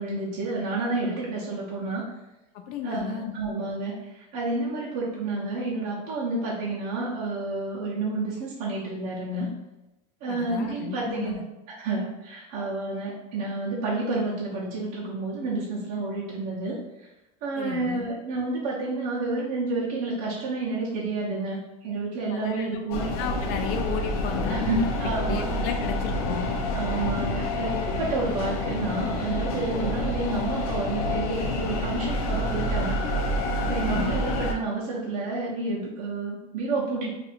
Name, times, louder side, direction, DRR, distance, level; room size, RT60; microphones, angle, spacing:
voice 1, 0.0-2.0 2.8-9.5 10.2-11.4 11.7-17.1 17.4-23.1 24.5-25.7 26.7-33.0 33.6-37.1, right 3 dB, 50° right, -6 dB, 0.8 m, -30 dB
voice 2, 2.5-3.3 10.3-11.4 17.6-18.1 22.3-26.5 27.9-28.1 33.8-34.2, left 7 dB, 50° left, 5 dB, 0.5 m, -34 dB
sound 1, 22.9-34.5, left 1 dB, 90° left, 0.7 m, -28 dB
2.6 x 2.6 x 4.2 m, 0.97 s
supercardioid pair, 155°, 19 cm